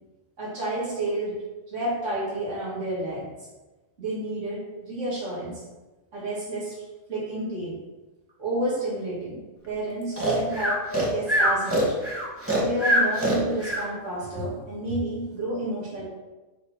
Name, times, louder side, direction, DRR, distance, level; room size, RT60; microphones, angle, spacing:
voice 1, 0.4-1.3 1.7-3.3 4.0-5.6 6.1-6.7 7.1-7.8 8.4-9.4 9.7-11.9 12.6-16.0, right 1 dB, 60° right, -8 dB, 2.7 m, -30 dB
Breathing, 10.2-13.9, equal, 10° right, 1.6 m, -23 dB
7.1 x 4.4 x 6.2 m, 1.1 s
omnidirectional pair, 1.4 m